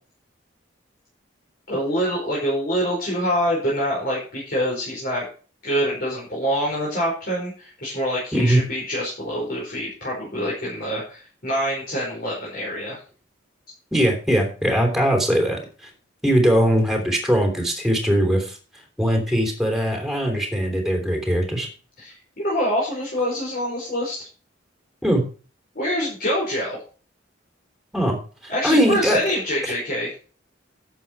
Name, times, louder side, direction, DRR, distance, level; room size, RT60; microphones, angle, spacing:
voice 1, 1.7-5.3 5.6-13.0 22.0-24.3 25.7-26.8 28.5-30.1, equal, 50° left, -5 dB, 4.8 m, -25 dB
voice 2, 8.3-8.6 13.9-15.6 16.2-18.6 19.0-21.7 25.0-25.2 27.9-28.2 28.4-29.2, equal, ahead, 2 dB, 3.1 m, -20 dB
11.5 x 8.2 x 4.7 m, 0.39 s
head